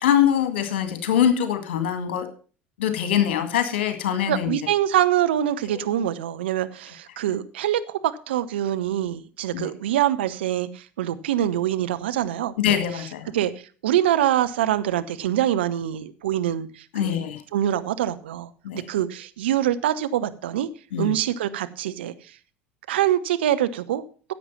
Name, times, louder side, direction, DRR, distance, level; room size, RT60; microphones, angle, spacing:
voice 1, 0.0-2.3 2.8-4.5 5.7-5.8 9.5-9.7 12.6-13.3 16.9-17.4 18.6-18.8 20.9-21.1, left 10 dB, 65° left, 8 dB, 1.9 m, -23 dB
voice 2, 4.3-13.1 13.3-13.5 13.8-17.3 17.5-18.5 18.9-20.7 21.0-22.1 22.9-24.0, right 12 dB, 70° right, 11 dB, 0.8 m, -24 dB
10.5 x 7.9 x 5.7 m, 0.39 s
figure-of-eight pair, 70°, 6 cm